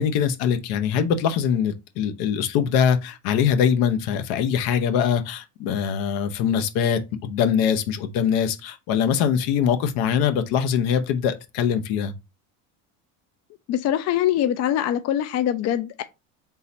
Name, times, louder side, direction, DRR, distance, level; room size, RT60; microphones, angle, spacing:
voice 1, 0.0-12.1, left 8 dB, 75° left, 0.8 m, -23 dB
voice 2, 13.7-16.0, left 11 dB, 45° left, 0.4 m, -23 dB
3.8 x 2.8 x 4.0 m
supercardioid pair, 105°, 38 cm